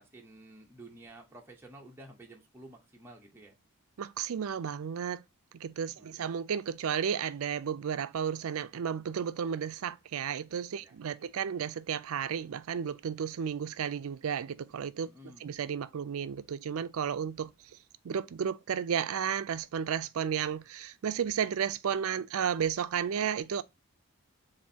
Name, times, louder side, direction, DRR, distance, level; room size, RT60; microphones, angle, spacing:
voice 1, 0.0-3.6 5.8-6.2 10.8-10.9 15.0-15.5, right 1 dB, 10° right, 0.9 m, -52 dB
voice 2, 4.0-5.2 5.5-15.1 15.4-17.5 18.0-23.6, right 7 dB, 75° right, 0.4 m, -33 dB
7.3 x 2.6 x 2.7 m
head